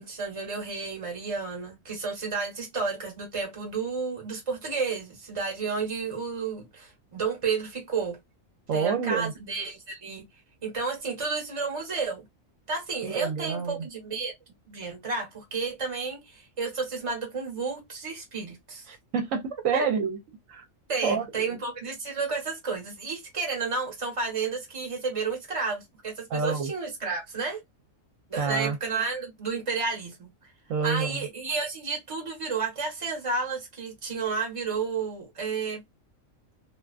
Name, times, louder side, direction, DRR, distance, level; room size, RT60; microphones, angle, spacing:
voice 1, 0.0-8.2 8.7-10.2 10.6-12.2 12.7-14.3 14.7-18.9 19.7-19.8 20.9-27.6 28.3-30.3 30.8-35.8, right 4 dB, 25° right, 1.0 m, -31 dB
voice 2, 8.7-9.3 13.0-13.8 18.9-20.2 20.5-20.6 21.0-21.5 26.3-26.7 28.4-28.8 30.7-31.2, right 5 dB, 75° right, 1.0 m, -28 dB
2.5 x 2.3 x 2.3 m
omnidirectional pair, 1.4 m